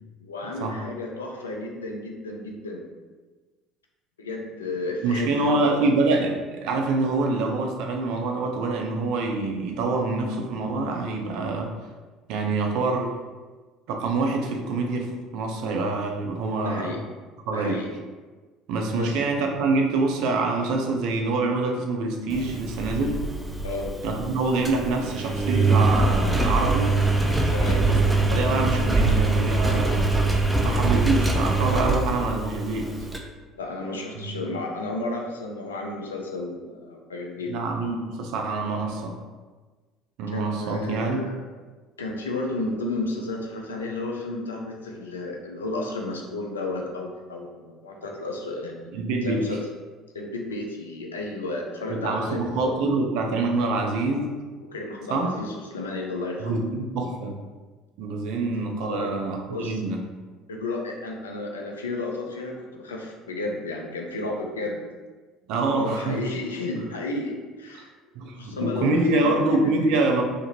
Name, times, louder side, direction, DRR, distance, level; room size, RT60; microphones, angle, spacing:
voice 1, 0.2-2.8 4.2-5.8 16.6-17.0 17.5-17.9 19.0-19.2 23.6-23.9 27.5-27.9 33.5-37.6 40.3-41.4 42.0-48.9 49.2-49.6 50.1-52.8 54.7-56.6 58.8-59.1 59.5-59.8 60.5-64.9 65.6-67.9 68.4-69.9, left 2 dB, 85° left, 0 dB, 0.4 m, -32 dB
voice 2, 5.0-11.7 12.3-13.1 13.9-16.9 17.5-17.8 18.7-23.2 24.0-26.9 27.9-30.1 30.6-32.9 34.1-34.5 37.5-39.1 40.2-41.2 48.9-49.4 51.9-54.3 55.1-55.4 56.4-57.4 58.0-60.0 65.5-66.2 68.2-70.2, right 3 dB, 65° right, 2 dB, 0.4 m, -25 dB
Engine, 22.3-33.2, right 3 dB, 10° right, 0.4 m, -23 dB
2.5 x 2.5 x 2.8 m, 1.3 s
hypercardioid pair, 60°, 0 cm